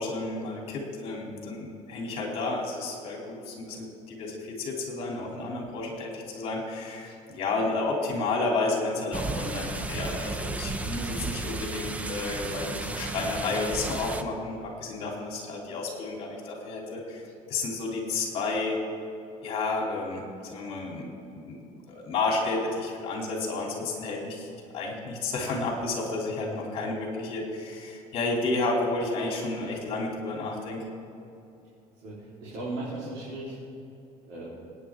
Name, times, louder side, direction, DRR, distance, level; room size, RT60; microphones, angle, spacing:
voice 1, 0.0-18.8 19.4-24.5 24.7-30.8, left 3 dB, 45° left, -1 dB, 3.1 m, -31 dB
sound 1, 9.1-14.2, right 3 dB, 10° right, 0.5 m, -33 dB
voice 2, 32.0-33.5 34.2-34.5, right 2 dB, 65° right, -7 dB, 3.7 m, -37 dB
27.0 x 9.7 x 3.6 m, 2.7 s
cardioid pair, 165°, 14 cm